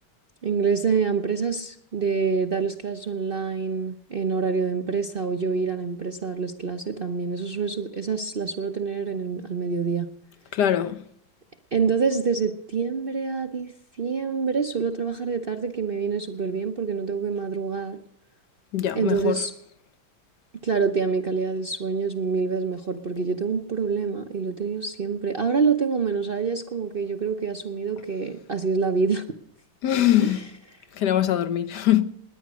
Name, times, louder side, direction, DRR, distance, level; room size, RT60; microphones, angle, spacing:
voice 1, 0.4-10.1 11.7-18.0 19.0-19.5 20.6-29.2 30.2-30.4, right 5 dB, 55° right, 0.6 m, -26 dB
voice 2, 10.5-11.0 18.7-19.4 29.8-30.4 30.9-32.0, left 11 dB, 65° left, 1.3 m, -22 dB
19.5 x 9.6 x 6.2 m
omnidirectional pair, 2.2 m